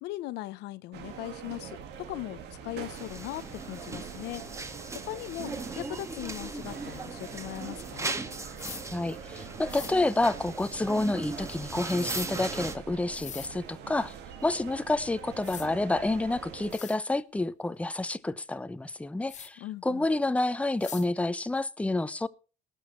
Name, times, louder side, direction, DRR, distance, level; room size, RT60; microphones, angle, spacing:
voice 1, 0.0-1.8 2.1-4.4 5.1-8.2 19.6-20.1, left 16 dB, 85° left, 0.8 m, -39 dB
sound 1, 0.9-16.7, right 7 dB, 80° right, 2.2 m, -44 dB
sound 2, 2.9-12.8, right 2 dB, 15° right, 1.4 m, -39 dB
sound 3, 8.6-8.8 9.7-9.9 12.0-12.3 13.1-13.5 15.0-15.1 15.4-15.7 16.3-16.4 16.7-17.0 19.3-19.5 20.8-21.1, left 9 dB, 45° left, 0.8 m, -42 dB
voice 2, 8.9-14.1 14.4-22.3, left 2 dB, 10° left, 0.7 m, -29 dB
19.0 x 6.4 x 4.4 m
cardioid pair, 110°, 17 cm